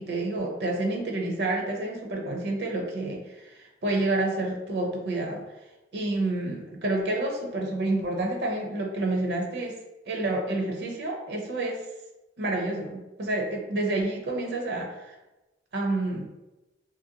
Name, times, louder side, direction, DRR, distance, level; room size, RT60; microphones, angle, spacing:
voice 1, 0.0-5.4 5.9-9.8 10.1-11.9 12.4-15.2 15.7-16.3, right 2 dB, 60° right, 1 dB, 0.5 m, -29 dB
2.9 x 2.5 x 2.7 m, 1.0 s
head